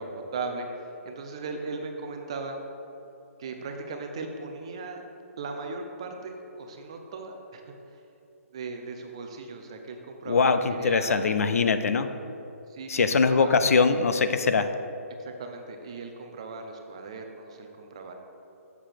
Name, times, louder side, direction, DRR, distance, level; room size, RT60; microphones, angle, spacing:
voice 1, 0.0-2.6 3.4-5.0 5.4-7.7 8.5-10.4 10.7-11.3 12.7-13.6 15.2-18.1, right 4 dB, 20° right, 4 dB, 0.4 m, -37 dB
voice 2, 10.3-12.1 12.9-14.7, left 4 dB, 70° left, 10 dB, 0.5 m, -22 dB
6.8 x 4.8 x 5.8 m, 2.8 s
hypercardioid pair, 175°, 8 cm